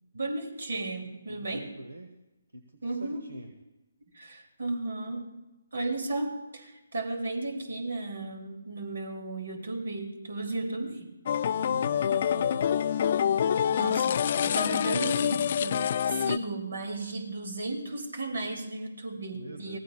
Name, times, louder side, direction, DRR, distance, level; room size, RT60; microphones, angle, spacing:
voice 1, 0.1-1.7 2.8-3.3 4.1-5.4 5.7-11.1 13.7-19.8, right 2 dB, 65° right, 6 dB, 2.4 m, -34 dB
voice 2, 1.3-2.1 2.5-3.5 11.5-12.8 19.3-19.8, right 1 dB, 85° right, 7 dB, 1.1 m, -43 dB
sound 1, 11.3-16.4, left 8 dB, 45° left, 0.4 m, -26 dB
23.5 x 17.0 x 2.3 m, 1.0 s
figure-of-eight pair, 145°, 0 cm